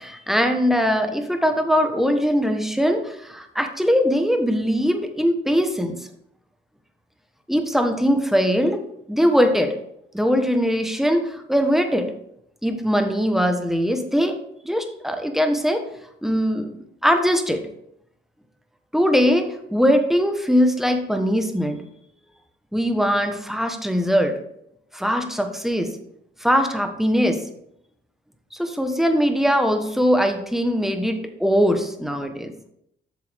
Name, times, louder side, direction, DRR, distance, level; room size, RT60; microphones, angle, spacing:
voice 1, 0.0-6.0 7.5-9.7 10.1-12.1 12.6-14.4 14.6-15.8 16.2-16.7 17.0-17.6 18.9-21.8 22.7-24.4 24.9-25.9 26.4-27.4 28.6-32.5, equal, ahead, 5 dB, 1.2 m, -21 dB
8.1 x 6.8 x 3.5 m, 0.75 s
cardioid pair, 90°, 20 cm